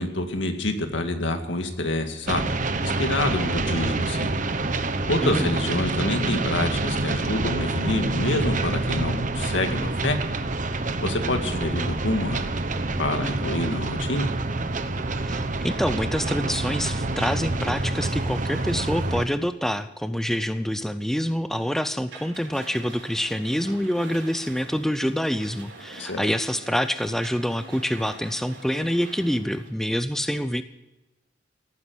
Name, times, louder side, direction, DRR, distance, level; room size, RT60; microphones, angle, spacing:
voice 1, 0.0-4.3 5.1-10.2 11.0-12.5 13.0-14.3 26.0-26.3, left 1 dB, 80° left, 6 dB, 2.1 m, -27 dB
sound 1, 2.3-19.3, right 2 dB, 45° right, 1.0 m, -27 dB
voice 2, 15.2-30.6, equal, ahead, 10 dB, 0.6 m, -26 dB
sound 2, 22.1-29.7, right 3 dB, 80° right, 4.3 m, -45 dB
17.5 x 9.7 x 7.9 m, 1.0 s
head